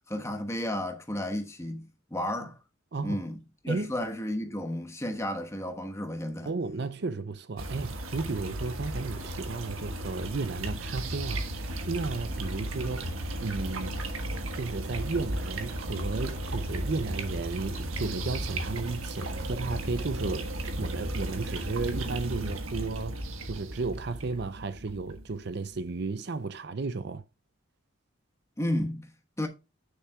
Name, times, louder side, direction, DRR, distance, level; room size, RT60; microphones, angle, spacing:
voice 1, 0.1-2.6 3.0-3.4 3.6-6.5 28.6-29.1 29.4-29.5, left 1 dB, 15° left, 1.2 m, -32 dB
voice 2, 2.9-3.2 3.7-3.9 6.4-14.0 14.5-20.5 20.8-23.2 23.4-27.2, right 3 dB, 55° right, 0.5 m, -34 dB
sound 1, 7.6-25.7, right 1 dB, 85° right, 1.4 m, -35 dB
9.4 x 6.8 x 2.3 m
head